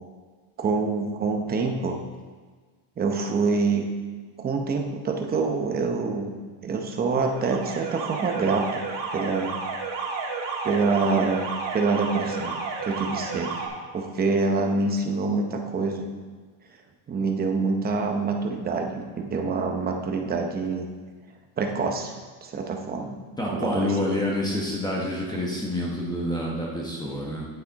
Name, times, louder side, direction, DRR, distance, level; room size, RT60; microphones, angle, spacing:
voice 1, 0.6-2.0 3.0-3.8 4.4-6.3 6.6-8.7 9.1-9.5 10.6-11.4 11.7-13.6 13.9-16.1 17.1-20.9 21.6-22.1 22.4-23.2 23.5-23.9, right 4 dB, 20° right, 3 dB, 0.7 m, -26 dB
Alarm, 7.2-13.7, right 4 dB, 65° right, 1.9 m, -32 dB
voice 2, 23.4-27.5, left 1 dB, 10° left, -3 dB, 1.0 m, -28 dB
8.9 x 7.9 x 4.0 m, 1.5 s
cardioid pair, 170°, 47 cm